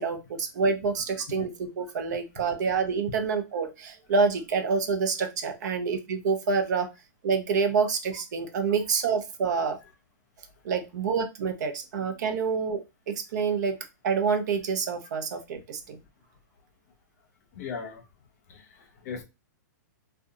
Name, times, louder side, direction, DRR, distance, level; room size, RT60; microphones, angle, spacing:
voice 1, 0.0-6.9 7.2-9.8 10.6-12.8 13.1-13.8 14.0-16.0, right 5 dB, 65° right, 7 dB, 0.6 m, -27 dB
voice 2, 17.5-18.1 18.5-19.2, left 6 dB, 55° left, 5 dB, 0.7 m, -38 dB
2.4 x 2.2 x 2.7 m, 0.25 s
hypercardioid pair, 150°, 10 cm